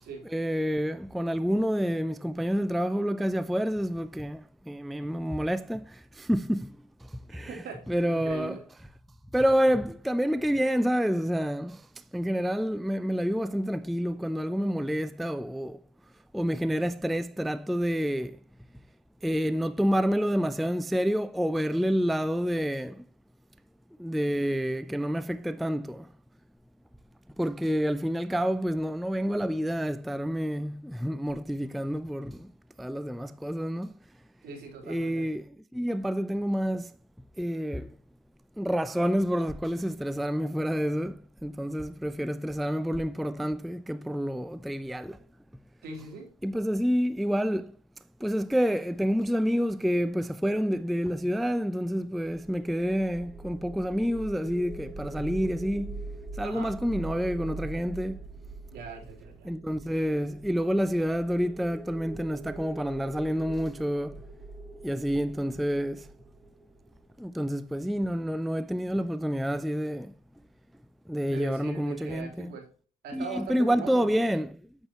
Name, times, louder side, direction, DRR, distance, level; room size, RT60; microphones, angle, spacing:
voice 1, 0.3-7.6 7.9-8.6 9.3-11.9 12.1-15.8 16.3-18.4 19.2-23.0 24.0-26.1 27.4-32.5 32.8-33.9 34.8-36.9 37.4-38.0 38.6-45.2 46.4-47.7 48.2-56.0 56.3-58.2 59.4-64.2 64.8-66.1 67.2-70.1 71.1-72.5 73.1-74.6, equal, ahead, 0.3 m, -28 dB
voice 2, 7.5-8.6 34.4-35.3 45.8-46.3 56.4-56.8 58.7-59.5 71.2-72.7 73.0-74.3, right 4 dB, 70° right, 3.5 m, -41 dB
sound 1, 52.3-67.4, right 3 dB, 25° right, 1.4 m, -43 dB
8.7 x 7.3 x 3.0 m
cardioid pair, 110°, 17 cm